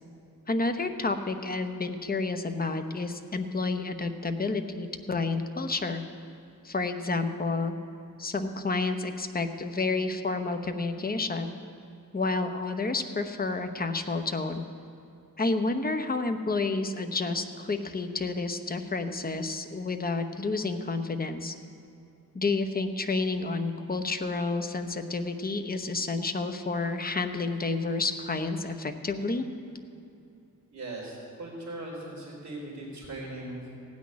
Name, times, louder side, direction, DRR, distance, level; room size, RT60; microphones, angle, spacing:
voice 1, 0.5-6.0 6.6-7.7 8.2-11.6 12.1-14.7 15.4-21.5 22.3-29.5, left 3 dB, 25° left, 7 dB, 0.9 m, -30 dB
voice 2, 30.7-33.6, right 2 dB, 45° right, -9 dB, 3.7 m, -39 dB
16.0 x 6.3 x 9.6 m, 2.7 s
wide cardioid pair, 100°, 36 cm